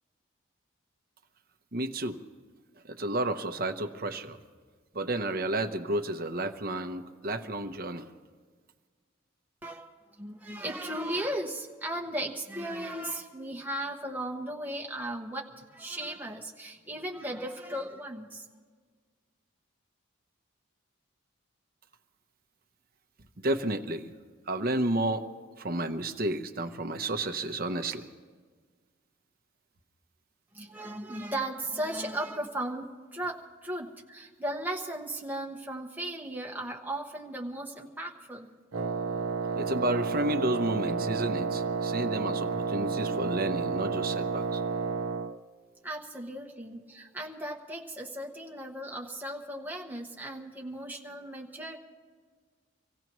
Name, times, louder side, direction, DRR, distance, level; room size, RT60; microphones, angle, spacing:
voice 1, 1.7-2.2 2.8-4.4 4.9-8.1 23.4-24.1 24.5-25.3 25.6-28.1 39.6-44.6, right 1 dB, 45° right, 7 dB, 0.8 m, -31 dB
voice 2, 10.2-18.5 30.5-32.8 33.1-33.4 33.6-38.5 45.8-51.8, right 1 dB, 10° right, -1 dB, 1.2 m, -36 dB
Wind instrument woodwind instrument, 38.7-45.4, right 4 dB, 85° right, 0.6 m, -31 dB
26.0 x 16.0 x 3.1 m, 1.5 s
head